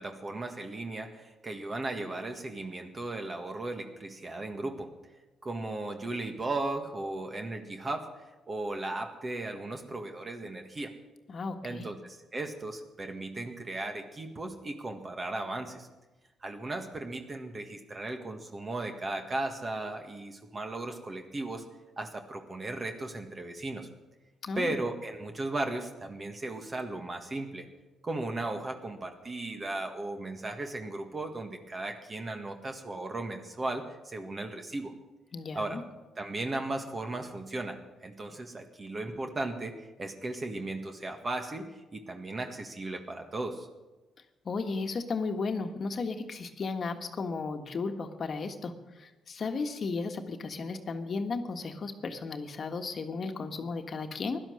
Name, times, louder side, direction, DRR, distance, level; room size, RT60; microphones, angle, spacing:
voice 1, 0.0-4.9 5.4-10.9 11.6-15.9 16.4-21.6 22.0-23.9 24.5-27.7 28.0-34.9 35.5-35.8 36.2-43.7, right 2 dB, 30° right, 5 dB, 1.7 m, -36 dB
voice 2, 11.3-11.9 24.4-24.8 35.3-35.8 44.4-54.4, left 4 dB, 45° left, 6 dB, 1.5 m, -34 dB
16.0 x 11.5 x 6.4 m, 1.1 s
cardioid pair, 90°, 0 cm